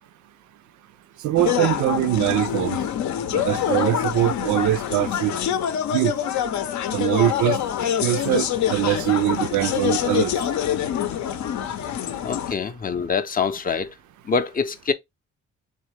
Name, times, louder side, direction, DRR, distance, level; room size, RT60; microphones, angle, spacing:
voice 1, 1.2-2.8 3.3-5.4 5.9-6.2 6.9-7.6 8.0-10.3, right 15 dB, 75° right, 0.5 m, -22 dB
sound 1, 1.4-12.5, left 10 dB, 70° left, 0.6 m, -25 dB
voice 2, 12.2-13.9 14.2-14.9, left 5 dB, 30° left, 0.5 m, -25 dB
3.8 x 3.2 x 3.2 m
cardioid pair, 90°, 30 cm